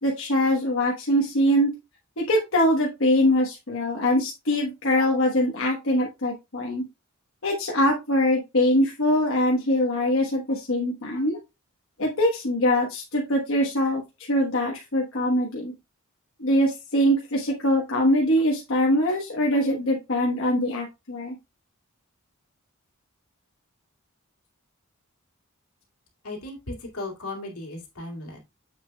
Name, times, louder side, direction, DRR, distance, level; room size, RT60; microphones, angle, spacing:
voice 1, 0.0-1.7 2.2-6.8 7.4-11.4 12.0-15.7 16.4-21.3, left 1 dB, 60° left, -2 dB, 1.2 m, -23 dB
voice 2, 26.2-28.4, left 2 dB, 85° left, 0 dB, 2.3 m, -36 dB
7.4 x 6.3 x 2.3 m, 0.24 s
head